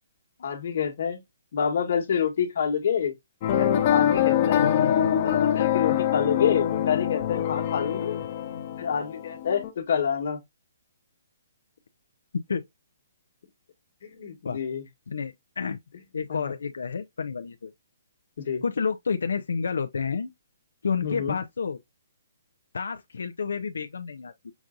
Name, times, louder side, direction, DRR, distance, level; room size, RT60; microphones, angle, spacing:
voice 1, 0.4-1.2 1.5-3.1 3.5-4.6 5.2-8.2 8.8-10.4 14.0-14.8 16.3-16.4 18.4-18.6 21.0-21.4, left 7 dB, 45° left, 1.3 m, -27 dB
sound 1, 3.4-9.7, left 10 dB, 25° left, 0.7 m, -24 dB
voice 2, 4.6-5.2 12.5-12.6 14.4-14.6 15.1-15.8 16.1-17.7 18.6-20.3 20.8-21.8 22.7-24.5, left 5 dB, 90° left, 0.5 m, -30 dB
5.9 x 2.6 x 2.4 m
hypercardioid pair, 175°, 0 cm